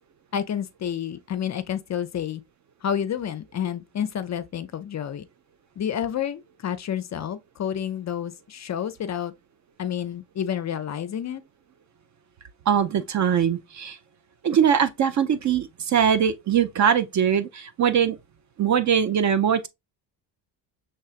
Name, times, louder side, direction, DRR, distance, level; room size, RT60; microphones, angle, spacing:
voice 1, 0.3-2.4 2.8-5.3 5.8-9.3 9.8-11.4, left 9 dB, 35° left, 0.5 m, -29 dB
voice 2, 12.7-14.0 14.4-18.2 18.6-19.7, right 8 dB, 35° right, 0.5 m, -21 dB
5.4 x 3.5 x 2.4 m
supercardioid pair, 70°, 50 cm